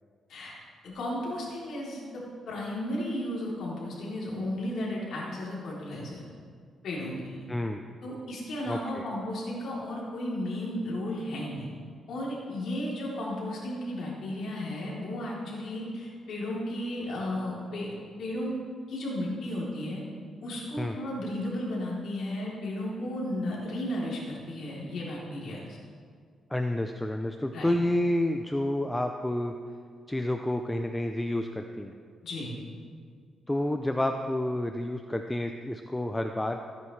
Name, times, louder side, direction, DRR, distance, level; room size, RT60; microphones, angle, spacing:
voice 1, 0.8-6.2 6.8-7.4 8.0-11.7 12.1-17.9 18.2-18.6 18.9-20.0 20.4-25.7 27.5-27.7 32.2-32.5, left 1 dB, 70° left, -5 dB, 3.2 m, -34 dB
voice 2, 7.5-7.8 8.7-9.1 20.8-21.0 26.5-29.5 30.1-31.9 33.5-36.6, left 1 dB, 10° left, 5 dB, 0.4 m, -29 dB
16.0 x 9.2 x 3.2 m, 2.1 s
cardioid pair, 135°, 0 cm